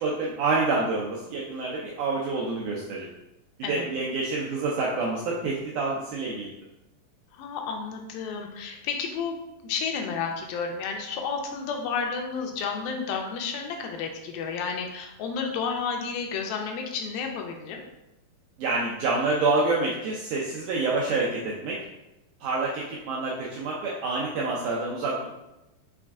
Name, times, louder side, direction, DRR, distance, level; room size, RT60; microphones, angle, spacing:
voice 1, 0.0-3.1 3.6-6.5 18.6-21.8 22.4-25.3, right 3 dB, 80° right, -4 dB, 1.8 m, -27 dB
voice 2, 7.3-9.4 9.6-17.8, left 5 dB, 85° left, 3 dB, 2.4 m, -31 dB
6.0 x 2.4 x 3.5 m, 0.93 s
omnidirectional pair, 4.2 m